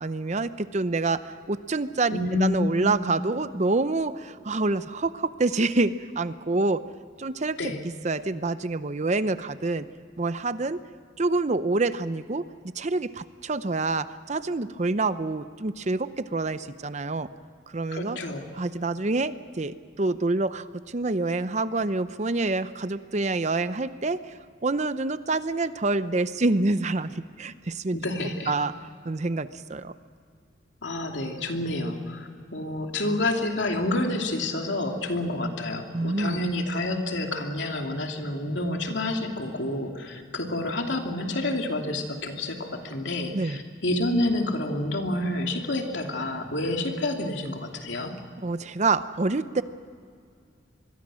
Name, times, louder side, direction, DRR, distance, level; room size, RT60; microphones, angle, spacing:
voice 1, 0.0-6.8 7.2-7.7 8.0-9.9 10.2-10.8 11.2-12.5 12.8-17.3 17.7-18.2 18.6-24.3 24.6-28.0 28.5-28.7 29.1-29.9 35.9-36.4 43.3-43.6 48.4-49.6, right 3 dB, 35° right, 13 dB, 0.7 m, -27 dB
voice 2, 2.1-3.1 7.6-7.8 17.9-18.5 27.9-28.5 30.8-48.2, left 1 dB, 70° left, 3 dB, 2.8 m, -29 dB
25.5 x 21.5 x 6.3 m, 2.2 s
head